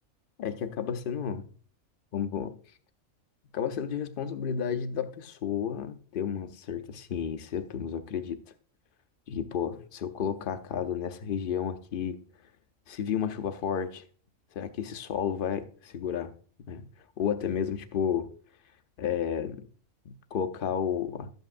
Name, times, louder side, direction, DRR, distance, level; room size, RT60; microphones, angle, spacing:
voice 1, 0.4-1.5 2.1-2.6 3.5-8.4 9.3-12.2 12.9-14.0 14.5-16.3 16.7-16.9 17.2-18.3 19.0-19.7 20.1-21.3, left 8 dB, 50° left, 0.7 m, -32 dB
12.0 x 8.0 x 2.5 m
omnidirectional pair, 1.4 m